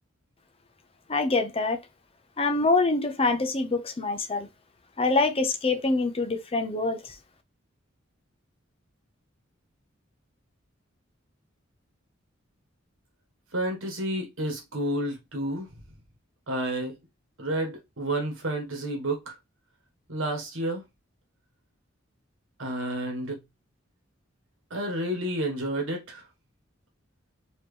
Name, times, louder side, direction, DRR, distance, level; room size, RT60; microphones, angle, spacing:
voice 1, 1.1-1.8 2.4-4.5 5.0-7.0, left 3 dB, 30° left, 0.6 m, -25 dB
voice 2, 13.5-15.7 16.5-16.9 17.4-19.3 20.1-20.8 22.6-23.4 24.7-26.2, right 1 dB, 80° right, 1.4 m, -30 dB
4.2 x 3.0 x 3.3 m
head